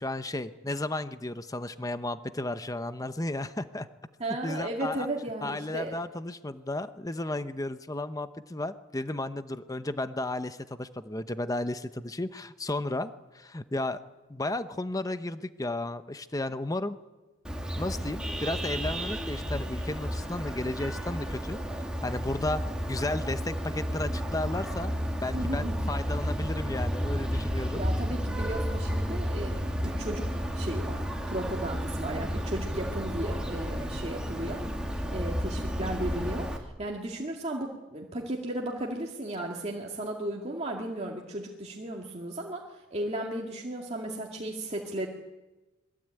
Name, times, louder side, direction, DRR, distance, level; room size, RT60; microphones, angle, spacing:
voice 1, 0.0-3.9 4.4-5.1 5.4-14.0 14.3-17.0 17.8-22.6 22.9-24.9 25.2-27.8, left 2 dB, 20° left, 11 dB, 0.8 m, -33 dB
voice 2, 4.2-5.9 25.3-25.8 27.7-34.7 35.1-45.1, right 1 dB, 35° right, -1 dB, 2.2 m, -35 dB
Vehicle horn car horn honking, 17.4-36.6, equal, 5° right, 2.8 m, -32 dB
26.0 x 22.0 x 9.1 m, 1.2 s
head